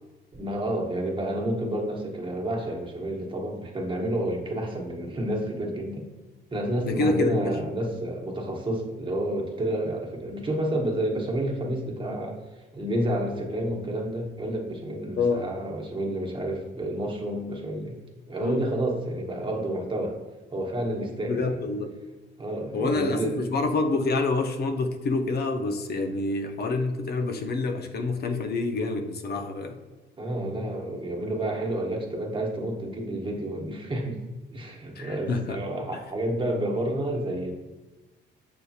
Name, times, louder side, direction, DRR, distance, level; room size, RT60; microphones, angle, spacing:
voice 1, 0.3-6.0 6.5-12.4 12.7-18.0 18.3-20.2 20.5-21.6 22.4-23.4 30.2-34.2 34.5-37.5, right 1 dB, 25° right, -1 dB, 1.0 m, -30 dB
voice 2, 6.8-7.6 15.2-15.5 18.4-18.6 21.3-21.9 22.7-29.8 35.0-35.6, left 3 dB, 55° left, 5 dB, 0.5 m, -27 dB
6.6 x 2.8 x 2.3 m, 1.2 s
cardioid pair, 90°, 20 cm